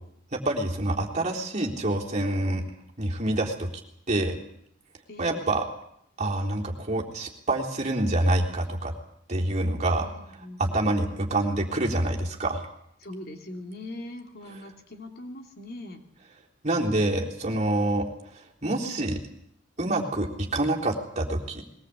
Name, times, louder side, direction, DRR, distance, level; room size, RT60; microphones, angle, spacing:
voice 1, 0.3-2.6 3.0-3.7 4.1-4.4 5.2-5.7 6.2-8.9 9.3-10.1 10.6-12.6 16.6-18.1 18.3-19.2 19.8-21.6, right 1 dB, 35° right, -1 dB, 3.7 m, -26 dB
voice 2, 5.1-5.5 10.0-10.9 13.0-16.0, left 1 dB, 55° left, 3 dB, 3.1 m, -41 dB
21.5 x 19.5 x 8.4 m, 0.72 s
head